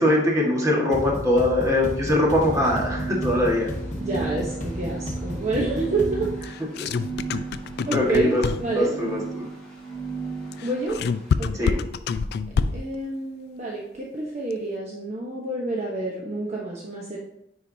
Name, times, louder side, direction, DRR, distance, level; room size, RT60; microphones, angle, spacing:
voice 1, 0.0-3.7 6.8-6.9 7.9-8.4 8.7-9.4 11.6-11.8, left 1 dB, 20° right, -3 dB, 1.7 m, -22 dB
sound 1, 0.9-6.5, left 1 dB, 40° left, 1.1 m, -33 dB
sound 2, 2.3-11.4, right 5 dB, 5° left, 2.5 m, -35 dB
voice 2, 4.0-6.3 7.9-9.0 10.6-11.0 11.4-11.7 12.7-17.2, right 3 dB, 35° right, -3 dB, 0.9 m, -28 dB
sound 3, 6.4-8.9 10.5-13.0, left 5 dB, 60° left, 0.3 m, -26 dB
9.7 x 4.8 x 2.8 m, 0.79 s
head